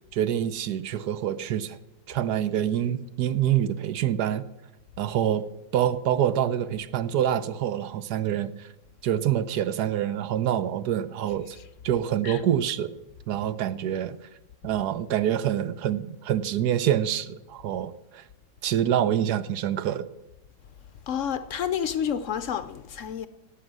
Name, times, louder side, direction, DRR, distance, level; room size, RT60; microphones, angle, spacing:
voice 1, 0.1-1.8 2.1-4.4 5.0-5.4 5.7-8.5 9.0-11.6 11.8-12.9 13.3-14.2 14.6-18.2 18.6-20.1, right 10 dB, 70° right, 1.2 m, -26 dB
voice 2, 21.1-23.3, left 8 dB, 65° left, 0.7 m, -29 dB
16.0 x 8.7 x 6.2 m
omnidirectional pair, 1.9 m